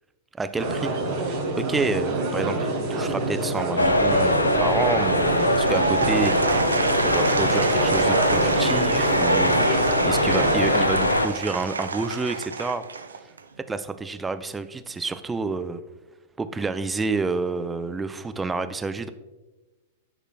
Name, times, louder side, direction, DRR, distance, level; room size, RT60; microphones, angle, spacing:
voice 1, 0.4-6.3 7.1-12.8 13.7-15.8 16.4-19.1, right 4 dB, 10° right, 10 dB, 0.4 m, -29 dB
sound 1, 0.6-10.8, right 2 dB, 45° right, 2.3 m, -26 dB
sound 2, 3.8-11.3, left 1 dB, 80° left, 0.5 m, -22 dB
Applause / Crowd, 5.3-13.5, right 5 dB, 70° right, 0.4 m, -30 dB
12.5 x 5.0 x 2.2 m, 1.1 s
figure-of-eight pair, 100°, 0 cm